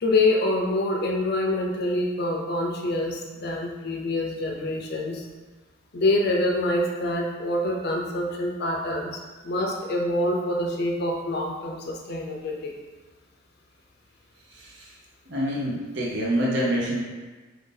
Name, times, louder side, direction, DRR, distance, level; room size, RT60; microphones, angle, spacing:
voice 1, 0.0-5.2 5.9-9.2 9.4-12.7, left 1 dB, 50° left, 1 dB, 0.5 m, -26 dB
voice 2, 14.5-14.9 15.3-17.0, equal, 60° right, -5 dB, 0.7 m, -26 dB
3.9 x 2.7 x 3.8 m, 1.3 s
head